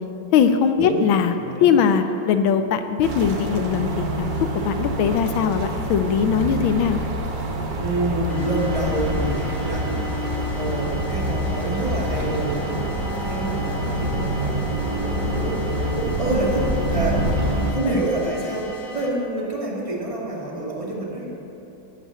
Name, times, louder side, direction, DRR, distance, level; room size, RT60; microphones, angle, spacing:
voice 1, 0.3-1.3 1.6-4.3 4.6-7.0, left 7 dB, 85° left, 9 dB, 1.4 m, -20 dB
voice 2, 1.4-1.7 7.8-17.3 17.7-21.3, right 2 dB, 15° right, -4 dB, 1.7 m, -28 dB
sound 1, 3.0-17.7, right 1 dB, 80° right, 0.4 m, -26 dB
sound 2, 8.3-19.1, left 2 dB, 35° left, 1.6 m, -40 dB
11.0 x 6.1 x 8.3 m, 2.9 s
omnidirectional pair, 2.2 m